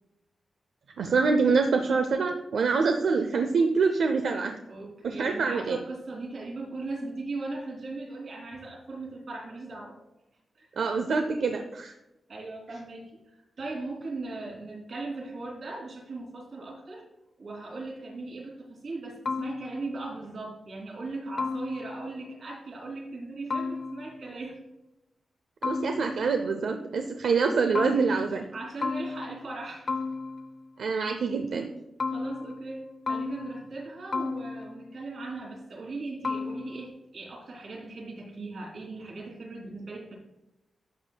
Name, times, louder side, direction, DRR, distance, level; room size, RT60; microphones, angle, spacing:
voice 1, 1.0-4.6 5.0-5.8 10.8-11.9 25.6-28.4 30.8-31.7, right 4 dB, 80° right, 5 dB, 0.6 m, -25 dB
voice 2, 4.7-10.0 10.5-10.7 12.3-17.0 17.4-24.6 28.5-30.0 32.1-40.1, right 3 dB, 60° right, -2 dB, 2.9 m, -38 dB
sound 1, 19.3-20.0 21.4-22.2 23.5-24.3 25.6-26.4 27.8-28.5 28.8-29.6 29.9-30.7 32.0-32.8 33.1-33.9 34.1-34.9 36.2-36.9, left 4 dB, 45° left, 0.5 m, -33 dB
11.5 x 7.0 x 2.3 m, 0.94 s
wide cardioid pair, 155°, 0 cm